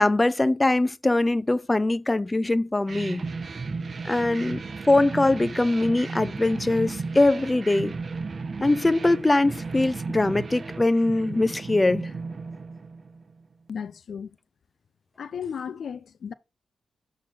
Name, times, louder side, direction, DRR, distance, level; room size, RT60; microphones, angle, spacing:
voice 1, 0.0-3.2 4.0-4.6 4.9-7.9 8.6-12.1, left 2 dB, 20° left, 0.5 m, -22 dB
sound 1, 2.9-13.4, right 4 dB, 50° right, 0.9 m, -35 dB
voice 2, 13.7-14.4 15.2-16.3, left 7 dB, 75° left, 0.4 m, -35 dB
7.2 x 3.8 x 4.2 m
cardioid pair, 70°, 0 cm